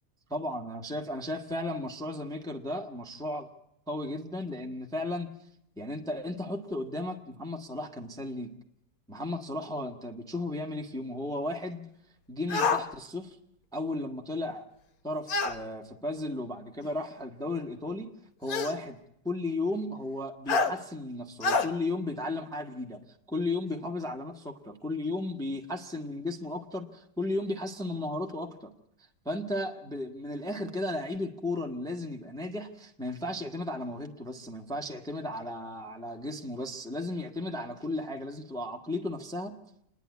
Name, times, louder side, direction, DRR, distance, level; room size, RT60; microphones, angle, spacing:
voice 1, 0.3-3.5 3.9-5.3 5.8-8.5 9.1-11.8 12.3-13.4 13.7-14.7 15.0-18.1 18.4-19.0 19.2-23.0 23.3-28.7 29.2-39.5, left 1 dB, ahead, 3 dB, 1.1 m, -34 dB
sound 1, 12.5-12.8 15.3-15.6 16.8-16.9 18.5-18.8 20.5-20.7 21.4-21.7, left 4 dB, 55° left, 1.6 m, -26 dB
27.5 x 10.5 x 9.4 m, 0.77 s
omnidirectional pair, 2.0 m